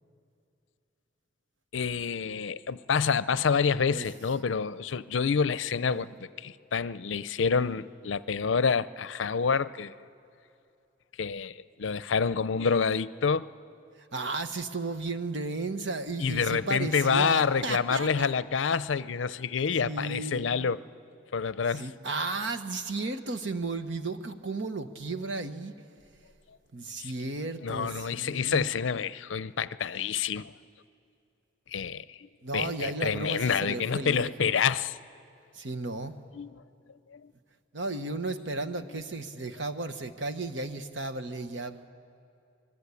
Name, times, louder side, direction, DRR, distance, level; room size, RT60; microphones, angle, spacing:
voice 1, 1.7-9.9 11.2-13.5 16.2-20.8 21.3-21.9 27.0-27.1 27.6-30.5 31.7-35.0 36.3-36.6 37.1-37.3 38.9-39.0, left 6 dB, 75° left, 0.5 m, -28 dB
voice 2, 14.0-18.3 19.8-20.7 21.7-25.7 26.7-28.7 32.4-34.5 35.5-36.2 37.7-41.9, right 3 dB, 65° right, 1.1 m, -34 dB
25.0 x 20.5 x 8.4 m
head